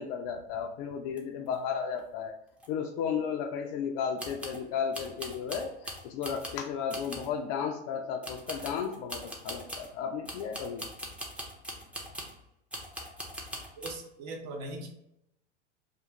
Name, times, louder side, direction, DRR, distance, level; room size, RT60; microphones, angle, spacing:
voice 1, 0.0-2.4 2.7-10.9, left 7 dB, 45° left, 3 dB, 0.4 m, -34 dB
sound 1, 1.2-1.3 1.5-1.6 2.0-2.1 2.6-2.7 4.2-4.6 4.9-6.6 6.9-7.3 8.2-9.9 10.3-12.4 12.7-13.9, equal, 5° right, 0.5 m, -41 dB
voice 2, 13.8-14.9, right 1 dB, 55° right, 2 dB, 0.8 m, -39 dB
2.4 x 2.4 x 3.0 m, 0.82 s
hypercardioid pair, 95°, 35 cm